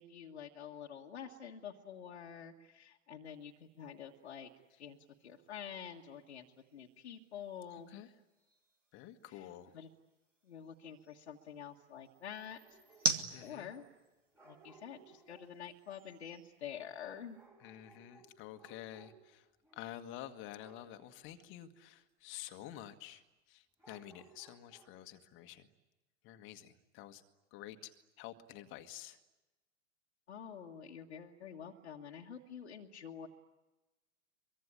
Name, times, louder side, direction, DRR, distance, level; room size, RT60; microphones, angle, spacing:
voice 1, 0.0-4.5 4.8-6.5 6.7-7.9 9.3-9.5 9.7-9.9 10.4-12.8 13.0-13.1 13.4-13.8 14.4-17.4 30.3-33.3, left 8 dB, 65° left, 0 dB, 1.7 m, -48 dB
respuesta impulsional habitación, 3.2-17.5, right 1 dB, 85° right, 2.1 m, -46 dB
voice 2, 8.9-9.7 13.3-13.7 17.6-19.5 19.7-25.7 26.2-27.2 27.5-29.2, left 12 dB, 35° left, 8 dB, 1.6 m, -50 dB
sound 1, 12.6-14.0 14.3-15.6 17.3-19.4 19.6-19.9 20.5-21.0 23.8-25.1, right 3 dB, 5° right, 4.1 m, -63 dB
24.0 x 23.5 x 9.9 m, 1.1 s
figure-of-eight pair, 95°, 37 cm